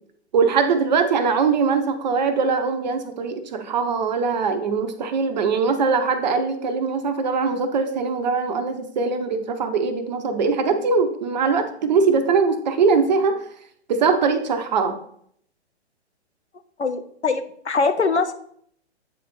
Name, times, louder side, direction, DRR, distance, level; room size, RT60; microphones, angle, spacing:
voice 1, 0.3-13.4 13.9-15.0, right 5 dB, 40° right, 8 dB, 0.8 m, -21 dB
voice 2, 16.8-18.3, left 4 dB, 80° left, 9 dB, 0.8 m, -22 dB
8.3 x 4.2 x 4.2 m, 0.65 s
figure-of-eight pair, 120°, 34 cm